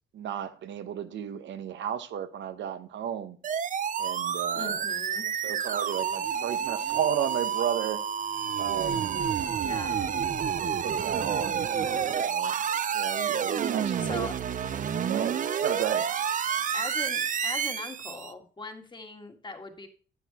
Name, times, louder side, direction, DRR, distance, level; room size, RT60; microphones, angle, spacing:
voice 1, 0.1-3.4 4.0-4.8 5.4-8.0 8.6-9.3 10.1-10.2 10.8-11.6 12.2-12.6 12.9-14.3 15.1-16.1, right 9 dB, 70° right, 1.0 m, -33 dB
sound 1, 3.4-18.3, right 7 dB, 40° right, 0.6 m, -29 dB
voice 2, 4.5-5.3 9.6-10.1 14.0-14.3 16.7-19.9, left 3 dB, 25° left, 1.8 m, -40 dB
9.6 x 9.2 x 2.9 m
cardioid pair, 90°, 20 cm